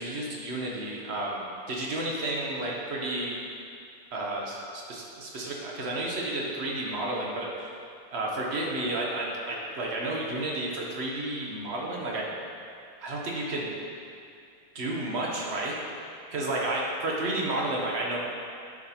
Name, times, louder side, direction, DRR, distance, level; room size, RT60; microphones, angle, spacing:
voice 1, 0.0-3.3 4.1-7.8 8.1-12.3 13.0-13.7 14.7-15.8 16.3-18.2, right 2 dB, 50° right, -3 dB, 0.8 m, -31 dB
10.5 x 5.0 x 2.9 m, 2.4 s
omnidirectional pair, 2.2 m